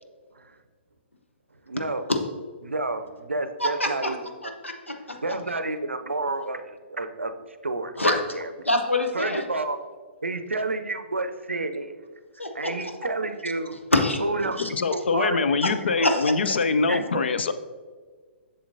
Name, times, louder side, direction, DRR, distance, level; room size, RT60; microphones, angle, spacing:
voice 1, 1.7-2.1 2.6-4.2 4.4-4.5 5.2-7.3 7.6-8.5 9.1-9.8 10.2-12.0 12.5-13.7 14.2-15.4 15.9-16.1 16.9-17.0, right 2 dB, 75° right, 9 dB, 0.5 m, -30 dB
voice 2, 3.6-4.2 4.4-5.2 8.0-8.4 8.6-9.4 12.4-12.7 13.9-14.2 14.6-14.7 15.6-15.7 16.0-16.3, left 1 dB, 85° left, 4 dB, 0.9 m, -25 dB
voice 3, 14.4-17.5, left 4 dB, 60° left, 11 dB, 0.4 m, -24 dB
7.1 x 6.8 x 2.7 m, 1.5 s
figure-of-eight pair, 120°, 7 cm